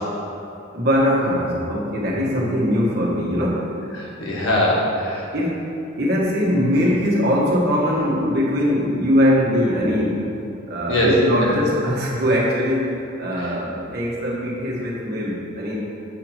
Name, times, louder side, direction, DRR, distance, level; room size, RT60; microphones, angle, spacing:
voice 1, 0.7-3.7 5.3-5.6 6.0-10.2 10.7-15.9, equal, 45° right, -4 dB, 1.4 m, -21 dB
voice 2, 3.9-5.2 10.9-11.6 13.4-13.5, left 1 dB, 75° left, -4 dB, 1.6 m, -21 dB
7.6 x 5.9 x 4.6 m, 2.7 s
head